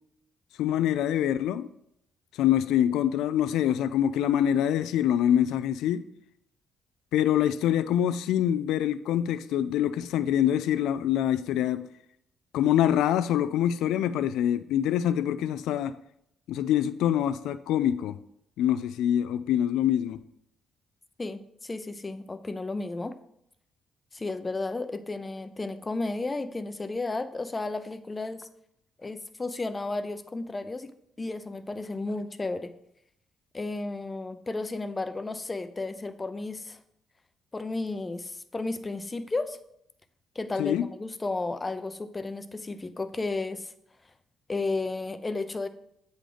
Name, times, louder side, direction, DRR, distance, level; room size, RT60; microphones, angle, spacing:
voice 1, 0.6-1.7 2.4-6.0 7.1-11.9 12.5-15.9 16.5-18.2 18.6-20.2 40.6-40.9, left 10 dB, 85° left, 0.3 m, -25 dB
voice 2, 21.2-23.2 24.1-28.5 29.0-30.9 31.2-32.7 33.5-36.8 37.5-39.6 40.4-43.7 44.5-45.7, left 3 dB, 25° left, 0.5 m, -33 dB
7.9 x 3.8 x 5.0 m
cardioid pair, 90°, 0 cm